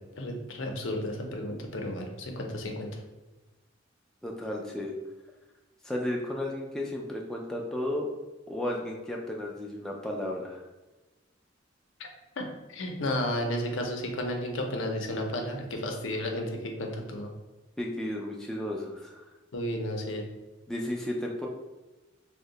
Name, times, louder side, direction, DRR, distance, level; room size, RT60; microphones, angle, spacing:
voice 1, 0.2-2.9 12.0-12.1 12.4-12.5 12.7-17.3 19.5-20.2, left 1 dB, 75° left, 3 dB, 0.5 m, -32 dB
voice 2, 4.2-4.9 5.8-8.1 8.5-10.6 17.8-19.2 20.7-21.5, left 1 dB, 5° left, -2 dB, 0.3 m, -33 dB
2.7 x 2.1 x 3.8 m, 1.1 s
head